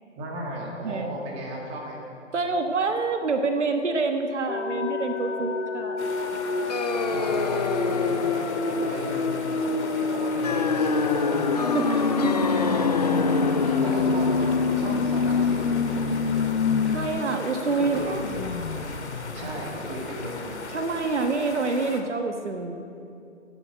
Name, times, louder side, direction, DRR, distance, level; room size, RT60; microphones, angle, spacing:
voice 1, 0.2-2.0 7.1-8.2 8.6-9.4 10.0-11.5 12.6-13.2 13.6-15.8 17.8-18.3 19.3-20.5, right 1 dB, 15° right, -1 dB, 2.0 m, -35 dB
voice 2, 0.8-1.2 2.3-6.1 11.7-12.7 16.9-18.2 20.7-22.8, right 3 dB, 65° right, 6 dB, 1.3 m, -27 dB
sound 1, 4.5-17.0 17.3-17.4 17.8-20.5, left 4 dB, 75° left, 1.2 m, -28 dB
sound 2, 6.0-22.0, left 4 dB, 60° left, 1.9 m, -38 dB
sound 3, 6.7-17.2, left 5 dB, 35° left, 0.5 m, -28 dB
14.0 x 10.0 x 7.7 m, 2.6 s
figure-of-eight pair, 145°, 38 cm